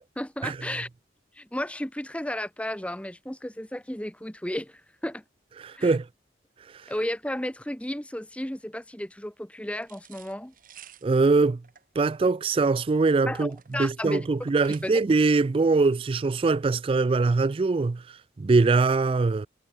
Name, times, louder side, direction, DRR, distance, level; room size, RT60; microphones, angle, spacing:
voice 1, 0.2-0.9 1.4-5.2 5.7-5.9 6.9-10.5 13.3-14.2 14.8-15.0, left 1 dB, 5° left, 1.2 m, -33 dB
voice 2, 5.6-6.1 11.0-11.6 12.0-19.5, right 3 dB, 30° right, 0.3 m, -23 dB
sound 1, 9.8-15.3, right 9 dB, 50° right, 6.7 m, -53 dB
head